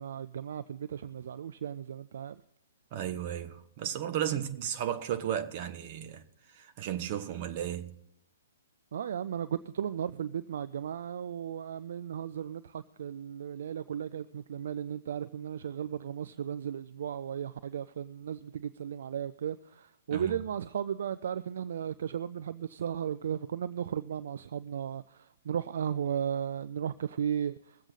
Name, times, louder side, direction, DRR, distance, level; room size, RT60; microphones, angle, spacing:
voice 1, 0.0-2.4 8.9-27.9, right 8 dB, 55° right, 0.4 m, -35 dB
voice 2, 2.9-6.2 6.5-7.9 20.1-20.3, right 10 dB, 40° right, 1.3 m, -34 dB
21.5 x 7.9 x 4.1 m
figure-of-eight pair, 120°, 0 cm